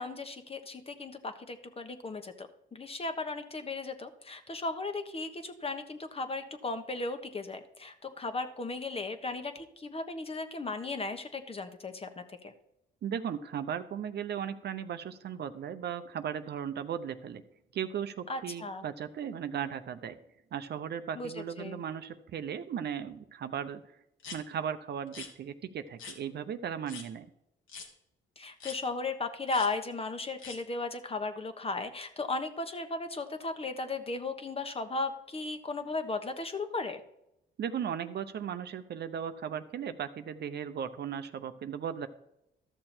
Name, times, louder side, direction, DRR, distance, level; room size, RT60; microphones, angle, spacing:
voice 1, 0.0-12.5 18.3-18.8 21.1-21.8 28.4-37.0, left 3 dB, 30° left, 8 dB, 1.2 m, -36 dB
voice 2, 13.0-17.4 17.7-20.2 20.5-23.8 24.3-27.3 37.6-42.1, right 8 dB, 55° right, 10 dB, 0.7 m, -36 dB
sound 1, 24.2-24.4 25.1-25.3 26.0-26.2 26.9-27.1 27.7-27.9 28.6-28.8 29.5-29.7 30.4-30.6, left 5 dB, 80° left, 1.8 m, -43 dB
13.0 x 6.7 x 4.4 m, 0.83 s
cardioid pair, 90°, 20 cm